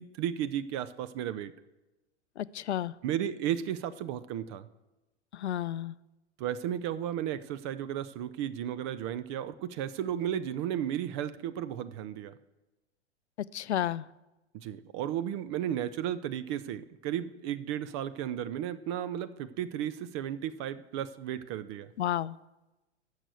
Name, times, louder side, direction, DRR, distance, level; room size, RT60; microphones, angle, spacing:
voice 1, 0.0-1.5 3.0-4.7 6.4-12.3 14.5-21.9, right 10 dB, 25° right, 14 dB, 0.4 m, -34 dB
voice 2, 2.4-2.9 5.3-5.9 13.5-14.0 22.0-22.4, left 11 dB, 70° left, 18 dB, 0.5 m, -31 dB
13.5 x 6.4 x 8.2 m, 1.0 s
figure-of-eight pair, 100°, 35 cm